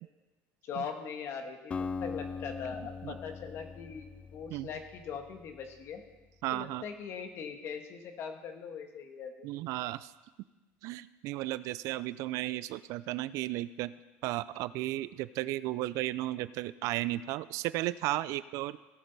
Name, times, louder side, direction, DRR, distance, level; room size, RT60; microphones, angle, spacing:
voice 1, 0.6-1.7 2.0-6.0 6.5-9.5, left 6 dB, 45° left, 5 dB, 1.4 m, -41 dB
Acoustic guitar, 1.7-5.8, left 5 dB, 20° left, 0.3 m, -41 dB
voice 2, 6.4-6.8 9.4-10.1 10.8-13.9 14.2-18.8, right 16 dB, 60° right, 17 dB, 0.3 m, -34 dB
17.0 x 6.4 x 4.0 m, 1.2 s
cardioid pair, 135°, 6 cm